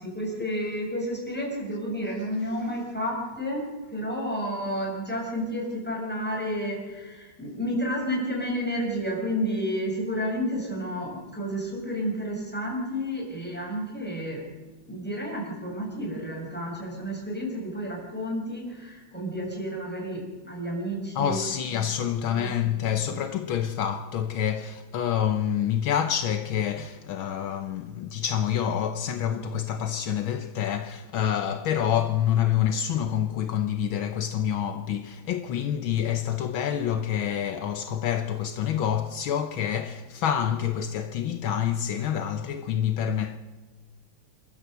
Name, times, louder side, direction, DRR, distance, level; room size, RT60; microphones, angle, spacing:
voice 1, 0.0-14.4 14.9-21.4 22.3-22.8, equal, 5° left, 6.8 m, -31 dB
voice 2, 21.2-43.4, left 9 dB, 75° left, 1.7 m, -27 dB
28.0 x 13.0 x 8.1 m
omnidirectional pair, 2.3 m